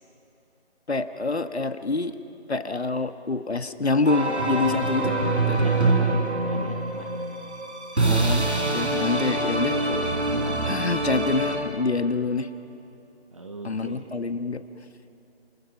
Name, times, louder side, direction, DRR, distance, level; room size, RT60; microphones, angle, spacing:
voice 1, 0.9-2.2 2.5-5.1 5.5-5.7 8.1-10.1 10.6-12.5 13.6-14.6, left 3 dB, 70° left, 9 dB, 1.6 m, -26 dB
sound 1, 4.1-11.6, right 2 dB, 85° right, 5.9 m, -25 dB
voice 2, 5.6-7.2 13.3-14.0, right 3 dB, 30° right, 3 dB, 1.2 m, -39 dB
30.0 x 28.0 x 6.0 m, 2.8 s
figure-of-eight pair, 170°, 34 cm